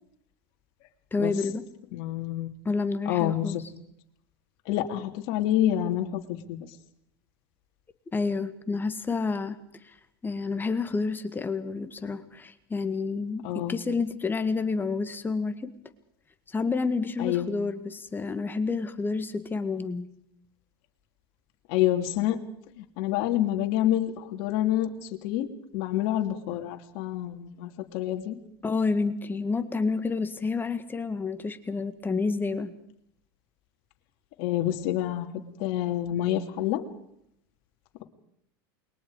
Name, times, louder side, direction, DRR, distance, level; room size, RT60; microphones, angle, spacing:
voice 1, 1.1-1.6 2.7-3.6 8.1-9.6 9.8-10.0 10.2-15.7 16.5-20.1 28.6-32.7, left 4 dB, 15° left, 9 dB, 2.0 m, -29 dB
voice 2, 1.9-2.5 3.1-3.6 4.7-6.7 13.4-13.8 17.2-17.5 21.7-22.4 22.8-25.5 25.7-28.4 34.4-35.3 35.6-36.8, left 12 dB, 60° left, 5 dB, 2.8 m, -27 dB
28.5 x 22.0 x 4.9 m, 0.74 s
hypercardioid pair, 100°, 12 cm